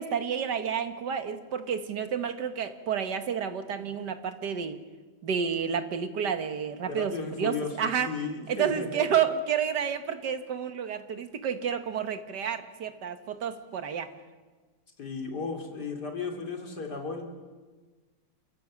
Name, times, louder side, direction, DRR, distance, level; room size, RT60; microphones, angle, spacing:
voice 1, 0.0-4.8 5.2-8.1 8.5-14.1, right 7 dB, 80° right, 8 dB, 1.9 m, -30 dB
voice 2, 6.9-9.0 15.0-17.2, left 4 dB, 75° left, 2 dB, 3.2 m, -35 dB
29.0 x 15.5 x 7.4 m, 1.4 s
omnidirectional pair, 1.8 m